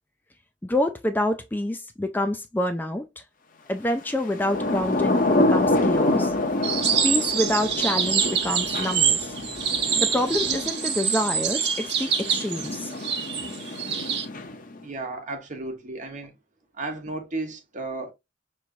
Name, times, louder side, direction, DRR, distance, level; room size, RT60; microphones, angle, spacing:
voice 1, 0.6-3.2 3.7-6.3 7.0-9.4 10.0-12.9, left 1 dB, 10° left, 0.3 m, -27 dB
Thunder / Rain, 4.2-14.8, left 2 dB, 50° left, 0.8 m, -27 dB
sound 1, 4.5-10.7, right 1 dB, 25° left, 2.1 m, -48 dB
sound 2, 6.6-14.3, right 7 dB, 65° right, 1.1 m, -25 dB
voice 2, 14.8-16.3 16.7-18.1, right 2 dB, 40° right, 1.1 m, -33 dB
5.9 x 3.1 x 2.6 m
head